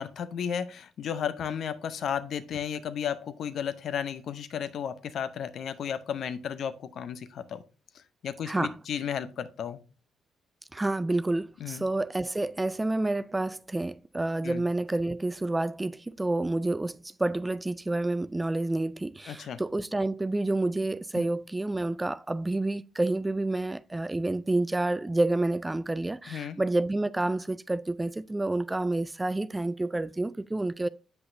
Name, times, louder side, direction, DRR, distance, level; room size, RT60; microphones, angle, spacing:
voice 1, 0.0-7.6 7.9-9.8 11.6-11.8 14.4-14.6 19.3-19.6 21.2-21.3 26.3-26.6, left 8 dB, 65° left, 0.7 m, -34 dB
voice 2, 8.5-8.8 10.7-30.9, right 2 dB, 20° right, 0.3 m, -29 dB
7.9 x 5.7 x 2.6 m
hypercardioid pair, 50°, 0 cm